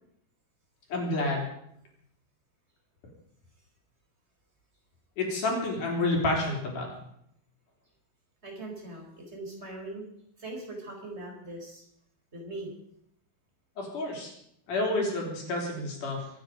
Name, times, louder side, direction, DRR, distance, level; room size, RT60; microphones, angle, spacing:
voice 1, 0.9-1.5 5.2-6.9 13.8-14.3 14.7-16.3, left 2 dB, 55° left, 0 dB, 4.8 m, -29 dB
voice 2, 8.4-10.1 10.4-11.8 12.3-12.7, right 2 dB, 15° right, 0 dB, 4.3 m, -40 dB
24.5 x 9.9 x 5.1 m, 0.73 s
omnidirectional pair, 4.3 m